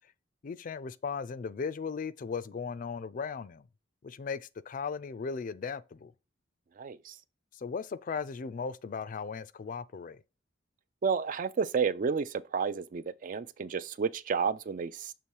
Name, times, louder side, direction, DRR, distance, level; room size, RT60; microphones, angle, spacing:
voice 1, 0.4-3.7 4.0-6.1 7.5-10.2, left 5 dB, 45° left, 0.4 m, -37 dB
voice 2, 6.8-7.2 11.0-15.1, right 6 dB, 45° right, 0.4 m, -31 dB
6.8 x 3.1 x 4.6 m
head